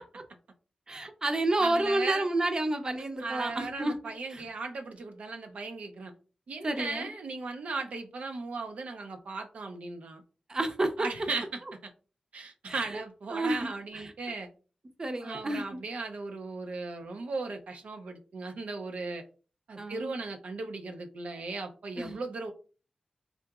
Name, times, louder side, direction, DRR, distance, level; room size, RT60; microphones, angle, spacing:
voice 1, 0.9-3.9 6.6-7.1 10.5-11.1 12.6-13.0 13.3-13.7 13.9-14.0 15.0-15.6 19.8-20.1 22.0-22.2, right 2 dB, 30° right, 7 dB, 0.5 m, -30 dB
voice 2, 1.6-2.3 3.2-6.1 6.5-10.2 11.0-11.9 12.3-14.5 15.2-19.2 19.7-22.5, right 3 dB, 80° right, 5 dB, 0.4 m, -37 dB
3.7 x 2.8 x 2.3 m, 0.36 s
wide cardioid pair, 90°, 2 cm